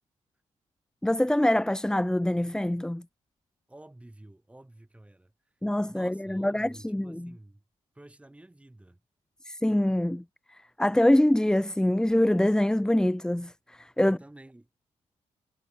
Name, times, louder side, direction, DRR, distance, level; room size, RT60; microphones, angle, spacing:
voice 1, 1.0-3.0 5.6-7.3 9.4-10.2 10.5-14.2, left 1 dB, 5° left, 1.2 m, -25 dB
voice 2, 3.7-5.3 5.9-7.6 7.9-9.0 14.0-14.7, right 1 dB, 10° right, 7.8 m, -50 dB
cardioid pair, 115°, 12 cm